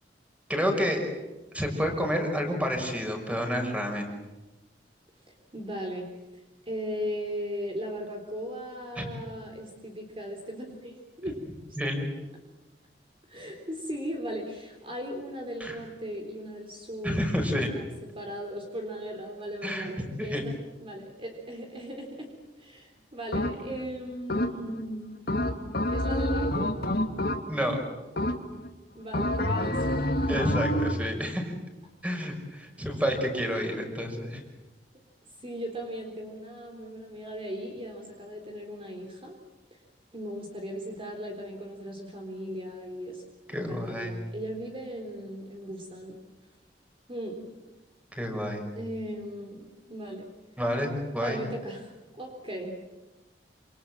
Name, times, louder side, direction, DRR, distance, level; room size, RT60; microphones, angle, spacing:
voice 1, 0.5-1.1 1.5-4.1 9.0-9.1 11.8-12.1 15.6-15.8 17.0-17.7 19.6-19.9 20.2-20.4 27.5-27.8 30.3-31.5 32.0-34.4 43.5-44.1 48.2-48.6 50.6-51.4, equal, 10° right, 3 dB, 5.9 m, -29 dB
voice 2, 5.5-6.1 6.3-11.4 13.3-17.2 17.5-20.5 20.8-22.3 22.6-25.1 25.9-26.7 28.9-30.3 33.3-33.9 35.4-39.3 39.7-39.8 40.1-43.2 43.5-46.2 47.1-47.5 48.8-50.3 51.2-51.9 52.2-52.8, equal, 30° right, 2 dB, 3.9 m, -37 dB
sound 1, 23.3-23.8 24.3-24.8 25.3-27.7 28.2-28.7 29.1-31.1, left 1 dB, 65° left, 2.6 m, -28 dB
28.0 x 28.0 x 7.5 m, 1.1 s
head